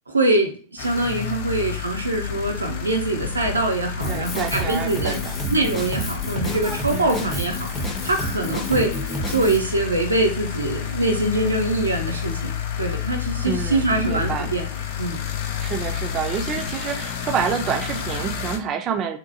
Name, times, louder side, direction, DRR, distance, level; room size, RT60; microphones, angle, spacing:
voice 1, 0.1-5.2 5.5-7.7 8.0-8.9 9.3-12.5 12.8-14.6 15.0-15.2, right 2 dB, 80° right, 3 dB, 0.6 m, -23 dB
sound 1, 0.8-18.6, left 8 dB, 50° left, 0.4 m, -30 dB
Drum kit, 4.0-9.6, left 1 dB, 20° left, 0.7 m, -29 dB
voice 2, 4.1-5.4 6.9-7.3 13.4-14.5 15.6-19.2, right 7 dB, 30° right, 4 dB, 0.5 m, -28 dB
2.8 x 2.2 x 2.7 m, 0.40 s
figure-of-eight pair, 90°, 0 cm